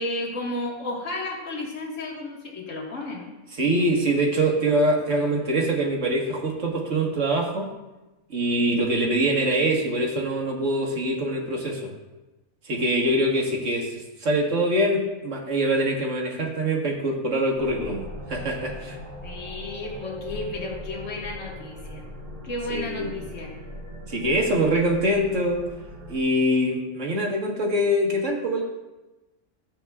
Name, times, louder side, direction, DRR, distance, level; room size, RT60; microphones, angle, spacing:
voice 1, 0.0-3.3 4.7-4.8 19.2-22.0 22.4-23.5, left 2 dB, 60° left, -2 dB, 1.9 m, -33 dB
voice 2, 3.6-7.7 8.3-11.9 12.6-13.9 14.2-18.0 18.3-19.0 22.7-23.1 24.1-25.7 26.1-28.6, right 1 dB, 60° right, -1 dB, 1.8 m, -24 dB
sound 1, 17.5-26.2, equal, 25° right, 1.3 m, -39 dB
13.5 x 8.0 x 2.4 m, 1.1 s
omnidirectional pair, 1.4 m